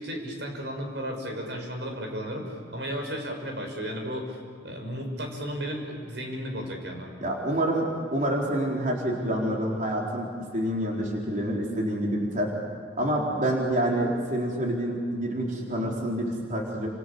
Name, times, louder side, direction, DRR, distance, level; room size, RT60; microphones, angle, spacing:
voice 1, 0.0-7.1, equal, 75° right, 2 dB, 6.1 m, -34 dB
voice 2, 7.2-12.5 13.0-16.9, right 1 dB, 45° right, -2 dB, 4.2 m, -27 dB
30.0 x 27.5 x 6.9 m, 2.1 s
head